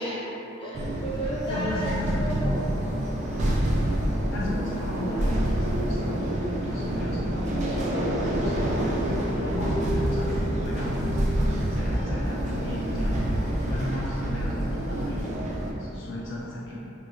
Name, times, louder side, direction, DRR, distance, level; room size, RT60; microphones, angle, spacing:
voice 1, 0.0-3.1, right 1 dB, 25° left, -8 dB, 0.7 m, -33 dB
sound 1, 0.7-15.7, right 1 dB, 35° right, 0.3 m, -27 dB
voice 2, 1.5-2.4 4.3-15.5 15.8-16.8, left 1 dB, 60° left, -5 dB, 0.4 m, -35 dB
3.0 x 3.0 x 2.4 m, 2.9 s
head